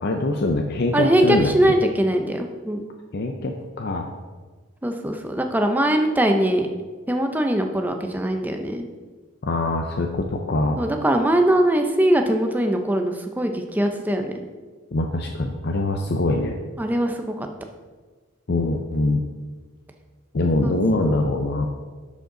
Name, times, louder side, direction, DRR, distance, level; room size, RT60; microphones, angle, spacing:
voice 1, 0.0-1.7 3.1-4.1 9.4-10.8 14.9-16.5 18.5-19.2 20.3-21.7, left 2 dB, 50° left, 2 dB, 0.5 m, -23 dB
voice 2, 0.9-2.9 4.8-6.7 7.1-8.8 10.8-14.4 16.8-17.5 20.6-20.7 21.0-21.1, right 1 dB, 10° right, 4 dB, 0.6 m, -21 dB
11.0 x 5.3 x 3.8 m, 1.4 s
head